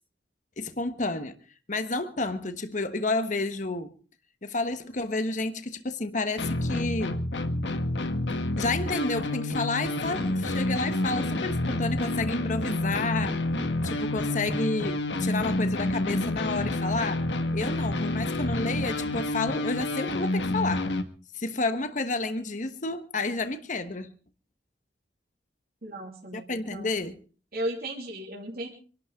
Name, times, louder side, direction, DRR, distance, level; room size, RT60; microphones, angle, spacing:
voice 1, 0.6-1.3 1.7-3.9 4.4-7.2 8.6-13.4 13.8-17.2 17.5-20.9 21.3-24.1 26.3-27.2, left 3 dB, 45° left, 1.2 m, -30 dB
sound 1, 6.4-21.0, left 1 dB, 90° left, 1.6 m, -29 dB
voice 2, 25.8-26.9 27.5-28.7, right 1 dB, 55° right, 3.3 m, -35 dB
27.0 x 12.0 x 3.6 m
head